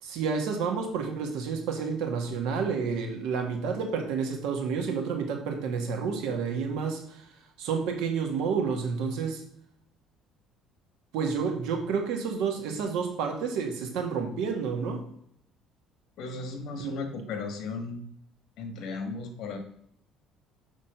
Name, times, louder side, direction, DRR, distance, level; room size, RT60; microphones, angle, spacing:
voice 1, 0.0-7.2 7.6-9.4 11.1-15.0 16.8-17.0, right 5 dB, 80° right, 3 dB, 1.4 m, -30 dB
voice 2, 16.2-18.0 18.6-19.6, left 4 dB, 60° left, 5 dB, 1.3 m, -35 dB
6.2 x 3.6 x 5.6 m, 0.70 s
cardioid pair, 160°, 0 cm